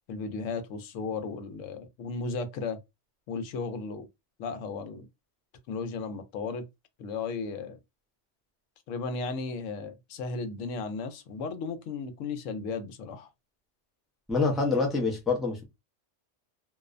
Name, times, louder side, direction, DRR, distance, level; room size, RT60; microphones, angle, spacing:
voice 1, 0.1-2.8 3.3-4.1 4.4-5.1 5.7-6.7 7.0-7.8 8.9-13.3, left 4 dB, 90° left, 1.0 m, -35 dB
voice 2, 14.3-15.6, left 4 dB, ahead, 0.4 m, -26 dB
2.5 x 2.1 x 2.4 m
omnidirectional pair, 1.3 m